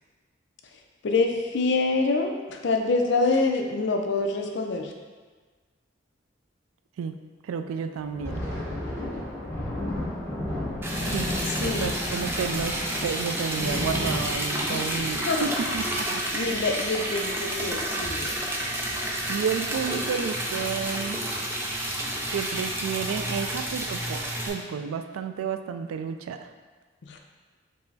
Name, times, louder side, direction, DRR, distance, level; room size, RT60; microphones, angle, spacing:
voice 1, 0.7-4.9 10.9-11.2 11.6-12.0 14.7-14.9 15.3-15.5 16.1-18.3 27.0-27.2, left 3 dB, 60° left, 3 dB, 0.4 m, -26 dB
voice 2, 7.4-8.4 11.1-11.3 11.6-16.4 19.3-21.2 22.3-26.5, right 6 dB, 90° right, 8 dB, 0.3 m, -31 dB
Thunder, 8.0-17.1 17.4-17.6 18.0-18.2 18.9-19.3, left 1 dB, 10° left, 1.1 m, -33 dB
Liquid, 10.8-24.5, right 1 dB, 10° right, 0.3 m, -30 dB
5.4 x 2.0 x 3.9 m, 1.4 s
head